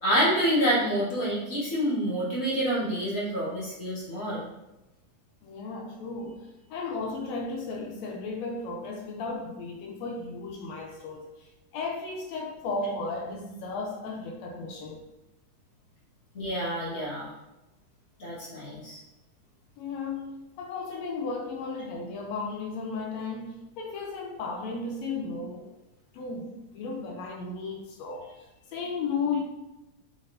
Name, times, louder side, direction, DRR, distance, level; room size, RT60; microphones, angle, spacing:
voice 1, 0.0-4.4 16.3-17.3 18.2-19.0, equal, 40° left, -8 dB, 1.2 m, -27 dB
voice 2, 5.4-15.0 19.8-25.7 26.1-29.4, left 4 dB, 80° left, 1 dB, 1.6 m, -35 dB
4.6 x 4.2 x 2.5 m, 0.98 s
omnidirectional pair, 3.5 m